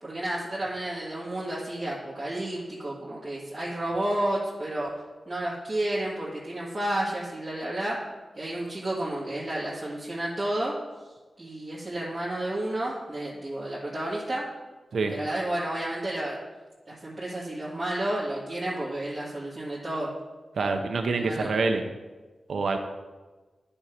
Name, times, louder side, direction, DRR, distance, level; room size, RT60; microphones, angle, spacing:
voice 1, 0.0-4.9 5.3-8.0 8.4-10.7 11.4-14.4 15.1-16.4 16.9-20.1 21.1-21.5, right 1 dB, 25° right, -8 dB, 1.8 m, -31 dB
voice 2, 20.6-21.8 22.5-22.8, right 3 dB, 80° right, 5 dB, 0.7 m, -26 dB
9.8 x 4.5 x 5.1 m, 1.3 s
cardioid pair, 70°, 0 cm